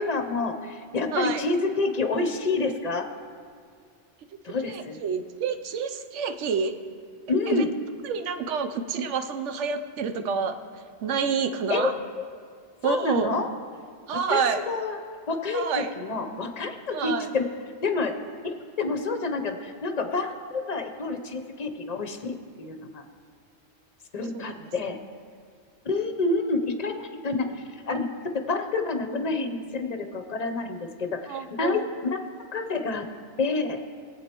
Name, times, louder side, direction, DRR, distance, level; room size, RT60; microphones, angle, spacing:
voice 1, 0.0-3.1 4.4-5.0 7.3-7.7 11.7-11.9 12.2-12.3 12.8-13.5 14.3-15.0 15.3-17.5 17.8-18.1 18.4-23.0 24.1-25.0 25.8-27.5 27.8-32.2 32.5-33.1 33.4-33.8, left 3 dB, 40° left, 6 dB, 0.7 m, -28 dB
voice 2, 1.1-1.4 4.6-6.7 7.5-7.6 8.0-10.6 11.0-11.9 12.8-13.4 14.1-14.6 15.5-15.9 16.9-17.3 24.3-24.4 29.1-29.2 31.3-31.8, right 6 dB, 80° right, 8 dB, 1.0 m, -28 dB
19.0 x 8.2 x 3.0 m, 2.1 s
omnidirectional pair, 1.2 m